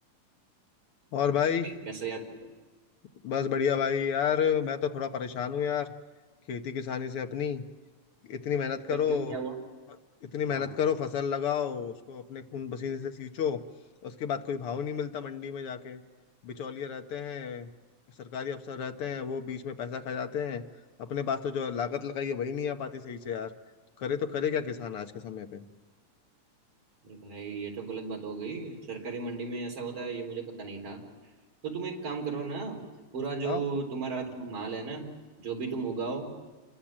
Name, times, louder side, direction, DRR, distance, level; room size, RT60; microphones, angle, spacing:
voice 1, 1.1-1.7 3.2-5.9 6.5-7.6 8.2-9.4 10.2-13.6 14.0-16.0 16.4-17.7 18.2-20.6 21.0-23.5 24.0-25.7 33.4-33.6, left 7 dB, 60° left, 6 dB, 1.8 m, -31 dB
voice 2, 1.6-2.2 8.9-9.5 10.5-10.7 27.0-31.0 31.6-32.8 33.1-35.0 35.4-36.3, right 4 dB, 50° right, 1 dB, 4.9 m, -35 dB
27.5 x 22.0 x 7.5 m, 1.4 s
omnidirectional pair, 3.3 m